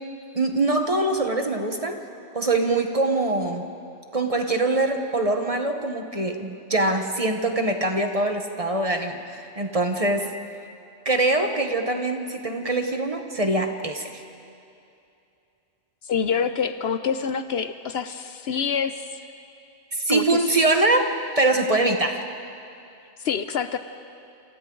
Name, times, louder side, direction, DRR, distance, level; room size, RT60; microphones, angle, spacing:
voice 1, 0.3-2.0 2.3-3.6 4.1-10.3 11.0-14.2 19.9-21.1 21.4-22.3, right 2 dB, 30° right, 5 dB, 1.3 m, -23 dB
voice 2, 16.1-18.9 20.1-20.4 23.2-23.8, left 6 dB, 65° left, 10 dB, 0.9 m, -26 dB
27.5 x 27.0 x 3.9 m, 2.6 s
omnidirectional pair, 1.2 m